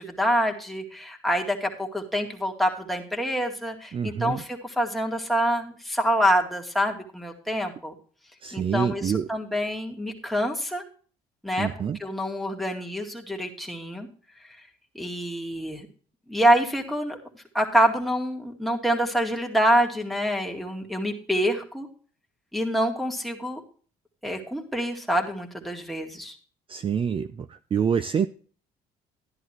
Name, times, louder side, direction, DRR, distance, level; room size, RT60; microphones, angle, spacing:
voice 1, 0.0-8.0 8.5-10.8 11.4-11.7 12.0-14.1 14.9-15.9 16.3-17.2 17.5-21.9 22.5-23.6 24.2-26.4, equal, ahead, 0 dB, 2.2 m, -26 dB
voice 2, 3.9-4.4 8.4-9.3 11.6-12.0 26.7-28.3, right 7 dB, 30° right, 12 dB, 0.5 m, -26 dB
12.5 x 10.5 x 3.0 m, 0.43 s
cardioid pair, 110°, 17 cm